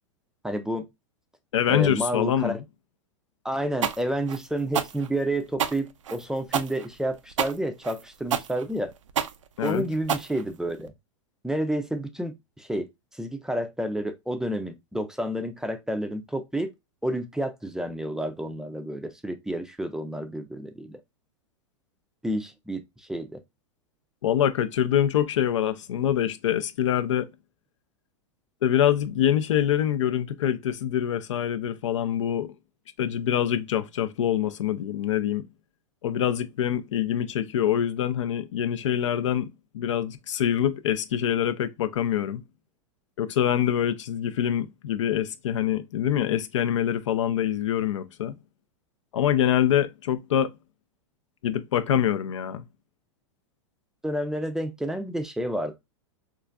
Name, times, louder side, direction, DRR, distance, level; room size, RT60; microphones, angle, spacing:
voice 1, 0.4-0.9 1.7-2.6 3.4-8.9 9.6-10.9 11.4-16.7 17.0-21.0 22.2-23.4 54.0-55.8, right 1 dB, 5° right, 0.4 m, -30 dB
voice 2, 1.5-2.6 9.6-9.8 24.2-27.3 28.6-32.5 33.0-35.4 36.0-39.5 39.7-42.4 43.2-48.3 49.1-50.5 51.4-52.6, left 10 dB, 80° left, 0.4 m, -25 dB
sound 1, 3.8-10.9, right 8 dB, 90° right, 0.4 m, -29 dB
3.8 x 2.4 x 2.2 m
hypercardioid pair, 115°, 16 cm